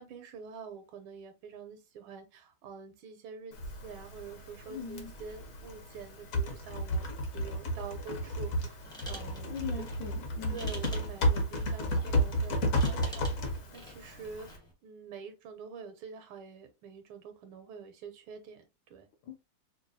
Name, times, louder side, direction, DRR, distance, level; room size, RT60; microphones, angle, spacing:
voice 1, 0.0-9.9 10.5-14.5 14.8-19.1, right 6 dB, 80° right, 1.4 m, -47 dB
Typing, 3.5-14.6, equal, 55° left, 1.0 m, -33 dB
voice 2, 4.7-5.1 9.5-10.7 19.3-19.4, left 7 dB, 70° left, 1.3 m, -40 dB
sound 1, 8.8-14.7, equal, 5° left, 0.4 m, -49 dB
5.2 x 2.2 x 2.6 m
omnidirectional pair, 2.3 m